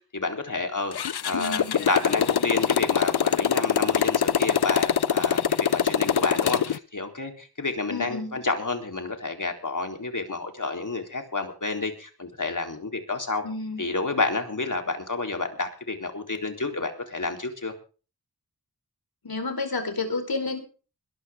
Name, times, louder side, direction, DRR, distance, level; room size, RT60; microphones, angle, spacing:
voice 1, 0.1-0.9 1.2-13.4 13.8-17.7, left 3 dB, 55° left, 4 dB, 4.0 m, -30 dB
Motorcycle, 0.9-6.8, left 8 dB, 90° left, 0.7 m, -23 dB
voice 2, 1.3-1.8 7.9-8.4 13.4-13.8 19.2-20.6, left 3 dB, 70° left, 6 dB, 4.7 m, -30 dB
21.0 x 13.0 x 3.8 m, 0.37 s
wide cardioid pair, 65°, 37 cm